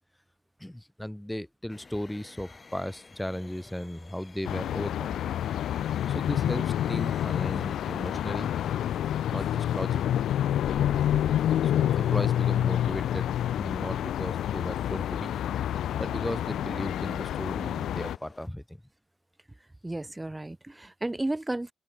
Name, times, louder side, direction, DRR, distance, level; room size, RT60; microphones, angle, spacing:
voice 1, 0.6-5.2 6.1-8.5 9.3-10.2 11.6-15.3 16.0-18.8, left 1 dB, 5° left, 4.4 m, -36 dB
sound 1, 1.7-18.5, left 4 dB, 30° left, 7.0 m, -49 dB
sound 2, 4.4-18.2, left 11 dB, 70° left, 1.7 m, -28 dB
voice 2, 19.8-21.7, right 2 dB, 10° right, 3.8 m, -33 dB
cardioid pair, 90°, 0 cm